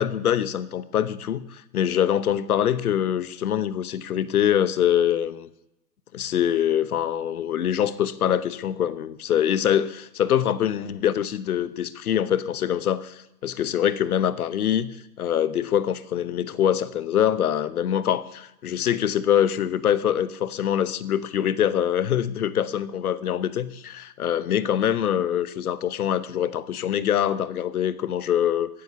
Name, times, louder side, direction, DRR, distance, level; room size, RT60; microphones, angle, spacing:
voice 1, 0.0-5.5 6.1-28.7, left 10 dB, 60° left, 15 dB, 1.1 m, -24 dB
15.5 x 10.0 x 6.9 m, 0.84 s
hypercardioid pair, 135°, 49 cm